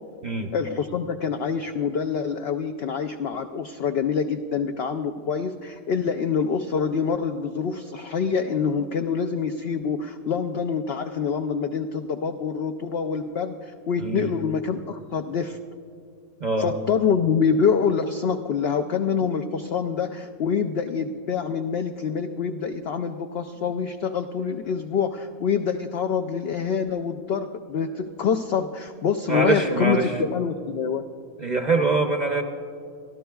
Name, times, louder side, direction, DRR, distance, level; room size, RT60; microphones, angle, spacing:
voice 1, 0.5-15.6 16.6-31.0, left 6 dB, 75° left, 7 dB, 0.5 m, -26 dB
voice 2, 14.0-14.3 16.4-16.7 29.3-30.2 31.4-32.4, right 3 dB, 45° right, 3 dB, 0.6 m, -23 dB
25.5 x 12.5 x 2.3 m, 2.4 s
omnidirectional pair, 1.5 m